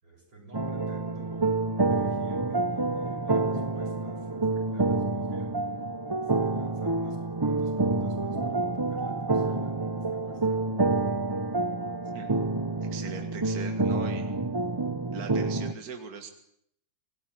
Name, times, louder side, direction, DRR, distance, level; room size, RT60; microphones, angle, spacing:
voice 1, 0.0-5.8 6.1-10.7, right 2 dB, 80° right, 2 dB, 7.6 m, -51 dB
sound 1, 0.5-15.7, right 3 dB, 25° right, 0.5 m, -28 dB
voice 2, 12.8-14.3 15.1-16.3, right 5 dB, 50° right, 5 dB, 2.2 m, -40 dB
26.5 x 18.5 x 9.3 m, 0.75 s
omnidirectional pair, 2.0 m